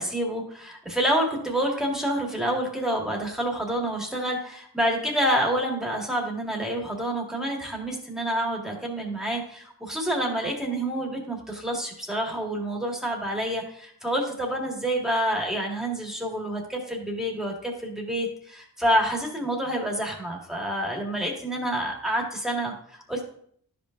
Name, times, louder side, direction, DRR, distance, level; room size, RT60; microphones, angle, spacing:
voice 1, 0.0-23.2, right 1 dB, ahead, -1 dB, 2.0 m, -28 dB
12.5 x 5.2 x 2.6 m, 0.63 s
wide cardioid pair, 70°, 42 cm